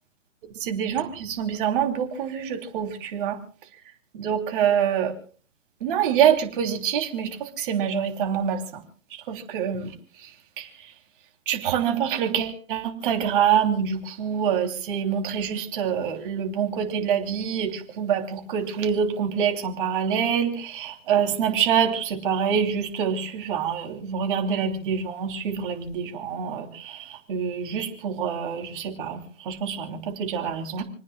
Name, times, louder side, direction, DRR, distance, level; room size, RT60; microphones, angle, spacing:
voice 1, 0.6-3.4 4.1-5.1 5.8-8.8 9.1-10.3 10.6-10.9 11.5-30.8, right 8 dB, 40° right, 3 dB, 3.1 m, -26 dB
29.5 x 9.8 x 2.3 m, 0.43 s
hypercardioid pair, 140°, 38 cm